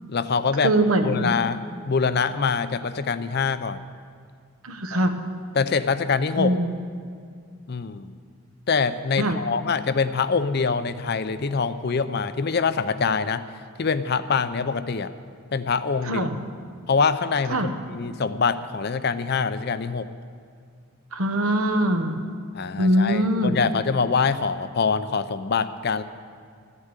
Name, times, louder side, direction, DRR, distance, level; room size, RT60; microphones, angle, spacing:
voice 1, 0.1-0.7 1.0-3.8 4.9-5.1 5.6-6.5 7.7-8.1 8.7-13.4 13.8-15.1 15.5-16.3 16.9-20.1 22.5-26.0, left 5 dB, 50° left, 12 dB, 0.5 m, -24 dB
voice 2, 0.6-1.4 4.6-5.1 6.4-6.8 9.2-9.4 16.1-16.3 17.5-17.7 21.1-22.2 22.8-23.6, right 1 dB, 85° right, 7 dB, 1.1 m, -22 dB
14.0 x 8.2 x 8.9 m, 2.2 s
head